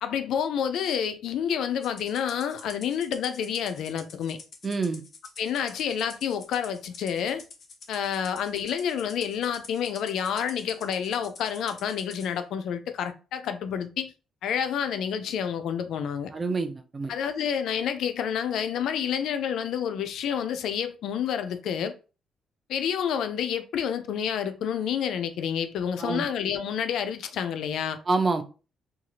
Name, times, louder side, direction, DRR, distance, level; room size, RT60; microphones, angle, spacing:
voice 1, 0.0-4.4 5.4-7.4 7.9-14.1 14.4-16.3 17.1-21.9 22.7-28.0, left 8 dB, 75° left, 0.4 m, -29 dB
Rattle (instrument), 1.8-12.3, left 4 dB, 55° left, 0.7 m, -48 dB
voice 2, 4.6-5.0 16.3-17.1 26.0-26.3 28.1-28.4, right 3 dB, 30° right, 0.4 m, -27 dB
2.6 x 2.4 x 2.9 m
cardioid pair, 90°, 0 cm